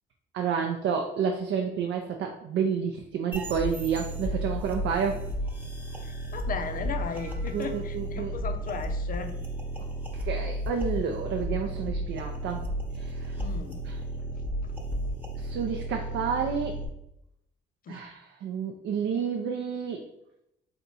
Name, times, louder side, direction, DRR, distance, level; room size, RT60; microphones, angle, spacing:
voice 1, 0.3-5.2 7.5-8.3 10.2-13.4 13.8-14.0 15.4-16.8 17.9-20.1, right 6 dB, 70° right, 2 dB, 0.5 m, -30 dB
sound 1, 3.3-16.8, right 1 dB, 10° right, 0.8 m, -33 dB
voice 2, 6.3-9.3 13.4-13.8 17.9-18.0, left 5 dB, 45° left, 7 dB, 0.5 m, -36 dB
3.5 x 2.7 x 4.0 m, 0.82 s
cardioid pair, 90°, 20 cm